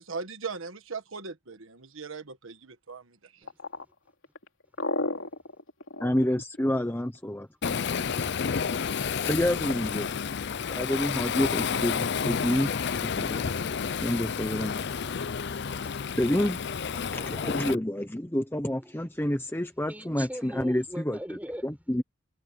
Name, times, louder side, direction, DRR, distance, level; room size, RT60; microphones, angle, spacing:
voice 1, 0.0-3.5, right 4 dB, 75° right, 1.5 m, -39 dB
voice 2, 3.4-3.9 5.0-5.3 18.8-22.0, equal, 5° right, 4.4 m, -42 dB
sound 1, 3.5-7.2 9.2-9.8, left 2 dB, 75° left, 2.9 m, -33 dB
voice 3, 6.0-7.8 9.2-10.1 10.7-12.7 13.0-13.6 14.0-14.8 15.8-15.9 16.2-16.6 16.9-21.2 21.6-22.0, left 1 dB, 10° left, 0.9 m, -28 dB
Waves surf, 7.6-17.8, left 6 dB, 55° left, 0.5 m, -30 dB
head